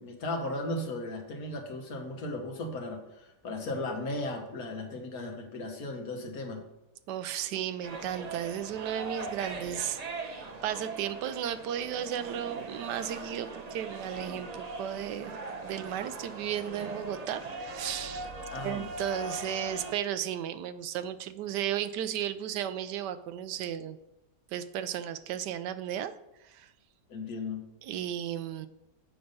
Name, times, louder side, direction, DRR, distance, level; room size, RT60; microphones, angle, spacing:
voice 1, 0.0-6.6 18.5-18.9 27.1-27.6, left 2 dB, 60° left, 3 dB, 1.6 m, -36 dB
voice 2, 7.1-15.3 15.6-18.3 18.6-24.0 24.5-26.1 26.4-26.7 27.8-28.7, right 10 dB, 80° right, 12 dB, 1.2 m, -34 dB
sound 1, 7.8-19.9, right 3 dB, 50° right, 0.5 m, -40 dB
7.8 x 5.4 x 5.3 m, 0.92 s
omnidirectional pair, 1.8 m